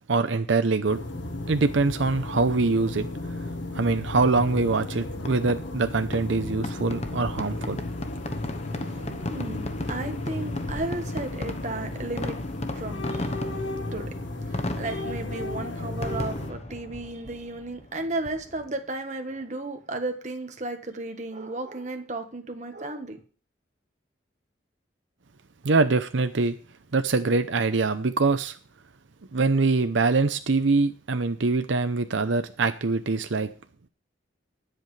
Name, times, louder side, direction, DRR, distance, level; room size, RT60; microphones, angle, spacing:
voice 1, 0.1-1.0 1.5-3.1 3.7-7.8 25.6-26.6 26.9-28.6 29.3-33.5, right 3 dB, 80° right, 0.7 m, -24 dB
sound 1, 0.9-16.5, left 2 dB, 75° left, 1.4 m, -34 dB
Fireworks, 5.2-18.8, left 1 dB, 35° left, 1.0 m, -36 dB
voice 2, 8.7-12.5 12.7-13.3 13.9-14.1 14.4-23.2, right 2 dB, 40° right, 1.4 m, -34 dB
19.5 x 8.0 x 3.3 m
head